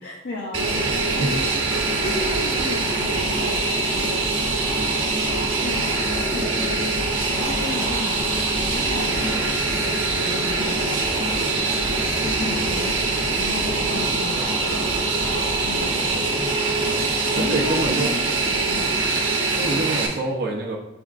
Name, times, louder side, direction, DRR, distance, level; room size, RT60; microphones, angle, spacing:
voice 1, 0.0-4.3 5.6-7.0 7.3-9.4 10.2-11.3 12.2-14.9 15.6-16.5 17.3-18.3 18.7-18.9, left 2 dB, 70° left, -3 dB, 0.6 m, -34 dB
Fixed-wing aircraft airplane, 0.5-20.1, right 3 dB, 70° right, 0.9 m, -23 dB
sound 1, 0.9-16.2, equal, 15° left, 1.3 m, -39 dB
voice 2, 17.3-18.1 19.5-20.8, right 2 dB, 50° right, -1 dB, 0.5 m, -26 dB
6.1 x 3.4 x 2.4 m, 0.90 s
head